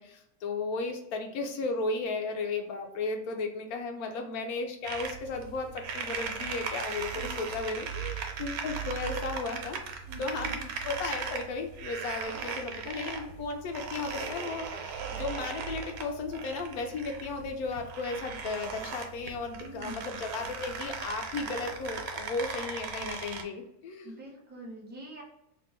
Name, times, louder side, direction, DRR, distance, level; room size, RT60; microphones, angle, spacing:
voice 1, 0.0-24.1, left 3 dB, 85° left, 4 dB, 1.1 m, -35 dB
sound 1, 4.8-23.4, right 6 dB, 85° right, 1.1 m, -38 dB
voice 2, 7.1-7.7 10.1-10.6 19.6-19.9 24.0-25.2, equal, 15° right, -2 dB, 0.4 m, -46 dB
3.0 x 2.2 x 4.1 m, 0.83 s
omnidirectional pair, 1.5 m